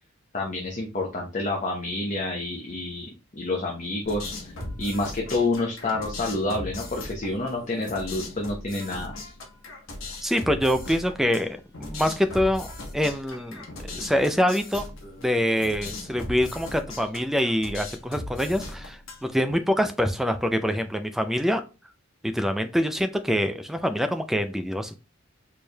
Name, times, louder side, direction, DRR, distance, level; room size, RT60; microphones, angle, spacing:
voice 1, 0.3-3.1 3.4-4.3 4.8-9.1, left 2 dB, 35° left, 0 dB, 0.7 m, -28 dB
sound 1, 4.0-19.5, left 2 dB, 65° left, 1.1 m, -38 dB
voice 2, 10.2-12.7 12.9-13.7 13.9-14.8 15.2-21.6 22.2-24.9, equal, ahead, 7 dB, 0.4 m, -25 dB
4.4 x 3.2 x 2.3 m, 0.31 s
head